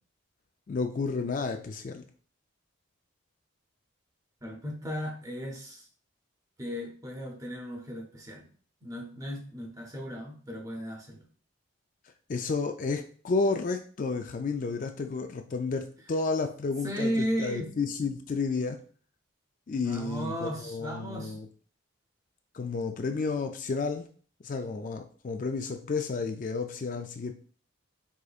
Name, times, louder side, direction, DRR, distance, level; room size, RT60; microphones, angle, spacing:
voice 1, 0.7-2.0 12.3-18.8 19.7-21.5 22.5-24.1 24.4-27.3, left 4 dB, 40° left, 5 dB, 0.3 m, -31 dB
voice 2, 4.4-5.9 6.6-8.5 8.8-11.3 16.8-17.7 19.8-21.4, equal, 15° right, 2 dB, 0.7 m, -35 dB
4.9 x 3.8 x 2.4 m, 0.43 s
head